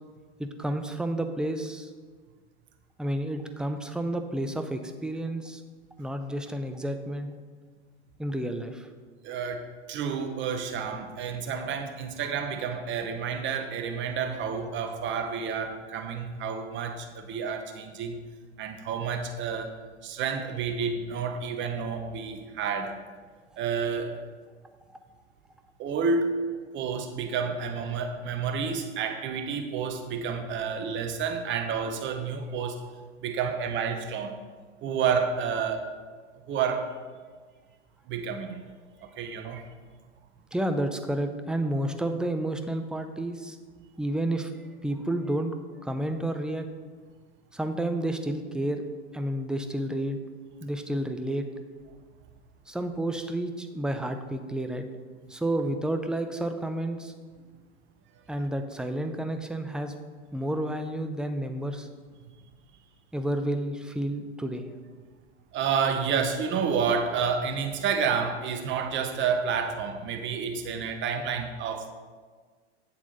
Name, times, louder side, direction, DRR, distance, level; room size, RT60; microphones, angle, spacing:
voice 1, 0.4-1.9 3.0-5.6 6.0-7.4 8.2-8.9 40.5-43.6 44.0-45.5 45.8-46.7 47.5-48.8 49.1-50.2 50.6-51.5 52.7-54.9 55.3-57.1 58.3-59.9 60.3-61.9 63.1-64.7, right 1 dB, ahead, 7 dB, 0.5 m, -30 dB
voice 2, 9.2-18.2 18.6-19.7 20.0-22.9 23.6-24.2 25.8-26.4 26.7-32.8 33.2-34.4 34.8-35.9 36.5-36.9 38.1-38.6 39.0-39.6 65.5-71.9, right 6 dB, 35° right, 6 dB, 1.0 m, -30 dB
8.4 x 7.1 x 4.0 m, 1.5 s
hypercardioid pair, 95°, 35 cm